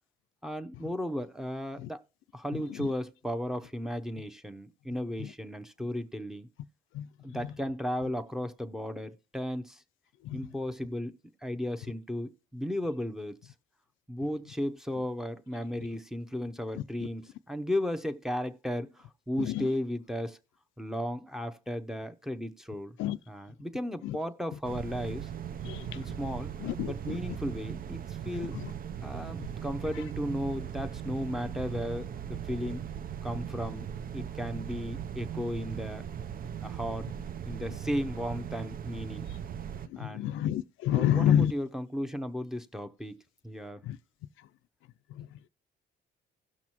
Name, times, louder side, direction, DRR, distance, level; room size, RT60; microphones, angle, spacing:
voice 1, 0.4-2.0 2.3-6.5 7.2-9.8 10.3-13.5 14.1-20.4 20.8-23.0 23.3-25.3 25.9-26.5 26.9-28.6 29.0-32.8 33.2-36.1 36.6-37.1 37.5-39.3 40.0-40.3 40.9-43.2 43.4-43.8, equal, ahead, 0.8 m, -35 dB
sound 1, 24.6-39.9, right 9 dB, 45° right, 0.5 m, -38 dB
voice 2, 26.6-27.2 40.0-41.5 43.9-44.0, left 10 dB, 85° left, 0.4 m, -27 dB
17.0 x 6.0 x 2.9 m
cardioid pair, 90°, 20 cm